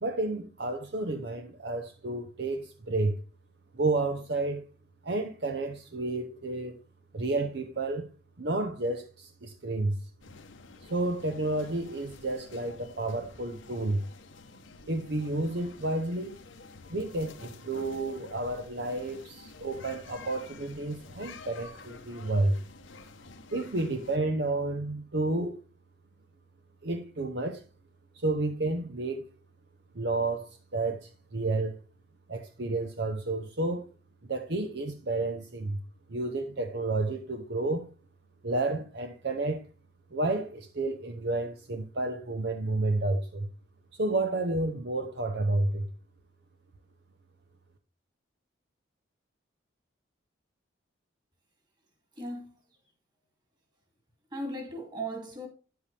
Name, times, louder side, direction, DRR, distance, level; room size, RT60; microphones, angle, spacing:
voice 1, 0.0-3.2 3.7-4.6 5.0-6.8 7.1-8.1 8.4-10.0 10.9-14.0 14.9-16.4 16.9-22.6 23.5-25.6 26.8-27.6 28.1-29.2 29.9-31.8 32.3-33.9 34.3-35.8 36.1-37.9 38.4-39.6 40.1-43.5 43.9-45.9, right 2 dB, 60° right, 0.8 m, -31 dB
sound 1, 10.2-24.2, left 4 dB, 80° left, 1.0 m, -50 dB
voice 2, 52.2-52.5 54.3-55.5, right 1 dB, 25° right, 2.5 m, -37 dB
10.0 x 7.9 x 3.3 m
head